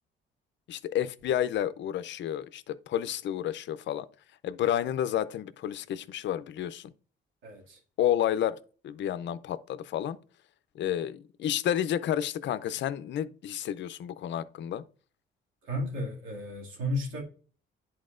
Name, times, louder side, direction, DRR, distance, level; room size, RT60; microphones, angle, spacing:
voice 1, 0.7-4.1 4.4-6.9 8.0-8.6 8.8-10.2 10.7-14.8, left 11 dB, 65° left, 0.5 m, -30 dB
voice 2, 7.4-7.8 15.6-17.2, left 1 dB, 90° right, 2.3 m, -33 dB
10.5 x 4.3 x 2.5 m
cardioid pair, 90°, 20 cm